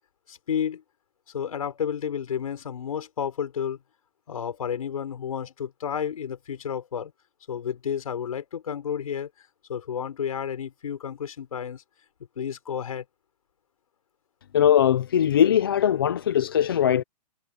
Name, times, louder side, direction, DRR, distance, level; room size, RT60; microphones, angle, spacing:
voice 1, 0.3-0.8 1.3-3.8 4.3-7.1 7.5-9.3 9.7-11.8 12.4-13.0, left 8 dB, 55° left, 4.6 m, -31 dB
voice 2, 14.5-17.0, left 9 dB, 35° left, 0.7 m, -20 dB
hypercardioid pair, 175°, 21 cm